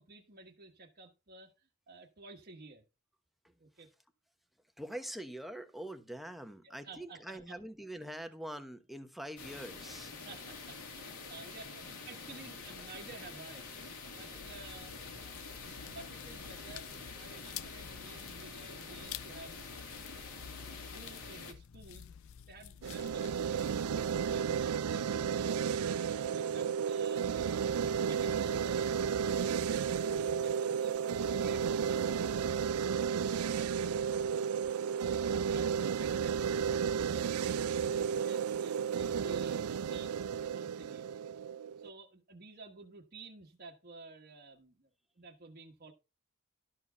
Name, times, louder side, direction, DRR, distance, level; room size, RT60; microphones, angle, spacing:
voice 1, 0.0-2.8 3.6-3.9 6.6-7.4 10.2-13.6 14.1-15.0 15.2-19.9 20.1-22.1 22.5-25.7 26.1-28.9 29.2-32.8 33.4-34.4 34.9-35.1 35.5-40.1 40.5-41.1 41.7-44.9 45.2-45.9, right 3 dB, 45° right, 1.3 m, -53 dB
voice 2, 4.8-10.2, right 1 dB, ahead, 1.0 m, -44 dB
sound 1, 9.4-21.5, left 4 dB, 85° left, 2.4 m, -47 dB
sound 2, 14.3-24.3, left 9 dB, 65° left, 0.5 m, -50 dB
sound 3, 22.8-41.9, right 7 dB, 80° right, 0.4 m, -33 dB
12.5 x 4.6 x 5.6 m
head